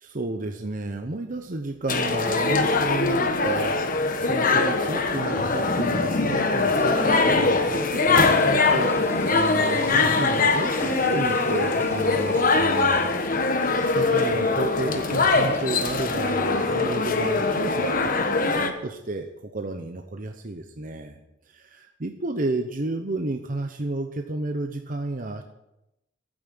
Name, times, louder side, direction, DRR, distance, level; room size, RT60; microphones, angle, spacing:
voice 1, 0.0-13.1 13.9-21.2 21.5-25.4, right 2 dB, 45° right, 5 dB, 0.9 m, -32 dB
Toilet flush, 1.3-1.4 1.9-2.1 2.4-3.0 3.5-3.6 3.9-4.6 5.1-5.2 5.7-5.8 6.3-18.2, equal, 15° left, 1.4 m, -40 dB
sound 1, 1.9-18.7, left 3 dB, 45° left, 1.3 m, -22 dB
13.0 x 9.0 x 7.8 m, 0.87 s
head